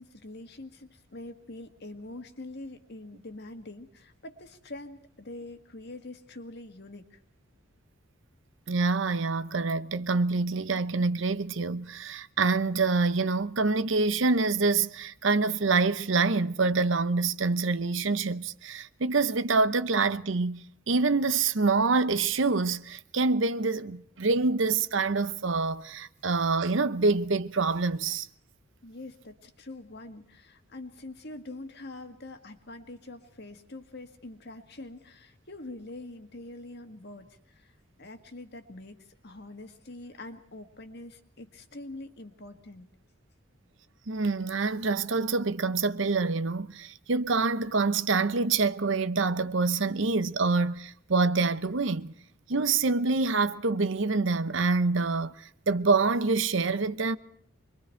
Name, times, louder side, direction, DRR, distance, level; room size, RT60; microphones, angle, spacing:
voice 1, 0.0-7.2 28.8-42.9, left 2 dB, 50° left, 1.9 m, -44 dB
voice 2, 8.7-28.3 44.1-52.1 52.5-57.2, right 3 dB, 60° right, 0.8 m, -26 dB
26.0 x 22.5 x 4.5 m
head